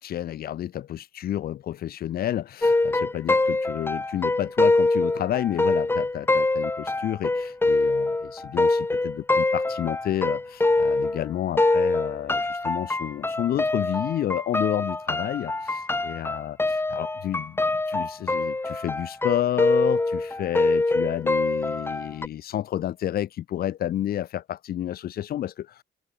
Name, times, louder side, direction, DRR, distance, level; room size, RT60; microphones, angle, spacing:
voice 1, 0.0-25.8, left 11 dB, 65° left, 5.5 m, -30 dB
sound 1, 2.6-11.3 11.6-22.3, left 2 dB, 15° left, 2.5 m, -24 dB
open air
cardioid pair, 110°, 17 cm